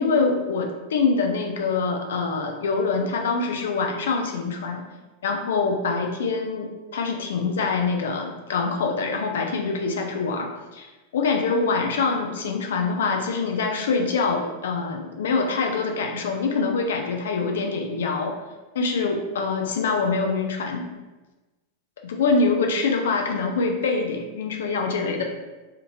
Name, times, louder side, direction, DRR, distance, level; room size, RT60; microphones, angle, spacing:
voice 1, 0.0-4.8 5.2-18.4 18.7-20.9 22.0-25.2, left 4 dB, 60° left, 3 dB, 0.4 m, -25 dB
4.4 x 2.5 x 2.5 m, 1.1 s
figure-of-eight pair, 90°, 0 cm